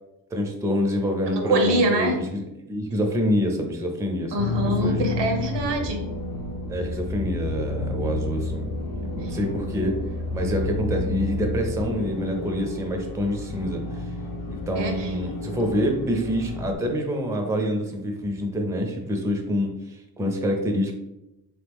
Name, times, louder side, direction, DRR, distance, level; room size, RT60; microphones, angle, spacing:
voice 1, 0.3-2.4 2.7-4.5 4.8-5.0 6.7-8.7 9.0-10.0 10.3-14.1 14.5-20.9, equal, 10° right, 3 dB, 0.4 m, -26 dB
voice 2, 1.3-2.2 4.3-6.0 9.2-9.3 14.7-15.1, right 1 dB, 85° right, 4 dB, 0.9 m, -24 dB
sound 1, 4.4-16.7, left 2 dB, 55° left, 0.7 m, -31 dB
3.8 x 3.0 x 3.4 m, 0.91 s
wide cardioid pair, 150°, 41 cm